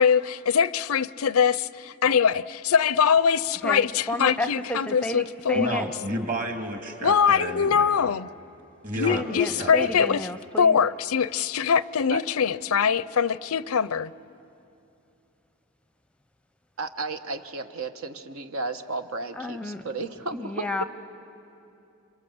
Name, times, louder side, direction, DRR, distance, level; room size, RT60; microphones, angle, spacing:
voice 1, 0.0-5.8 7.0-8.3 9.0-10.3 10.6-14.1, left 7 dB, 90° left, 0.5 m, -23 dB
voice 2, 3.6-5.9 9.1-10.8 19.4-19.9 20.3-20.8, left 1 dB, 5° left, 0.6 m, -31 dB
voice 3, 5.5-7.9 8.8-9.9, right 1 dB, 35° right, 2.4 m, -31 dB
voice 4, 16.8-20.7, right 3 dB, 80° right, 1.2 m, -33 dB
28.5 x 26.5 x 7.9 m
head